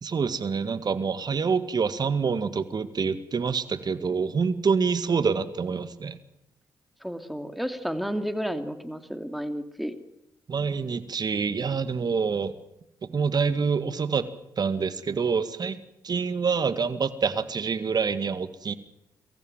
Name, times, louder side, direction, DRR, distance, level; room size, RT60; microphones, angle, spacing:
voice 1, 0.0-6.2 10.5-12.5 13.0-14.3 14.6-15.8 16.0-18.7, right 5 dB, 50° right, 12 dB, 1.9 m, -26 dB
voice 2, 7.0-9.9, equal, ahead, 8 dB, 2.9 m, -32 dB
24.0 x 15.0 x 9.1 m, 0.85 s
supercardioid pair, 50°, 9 cm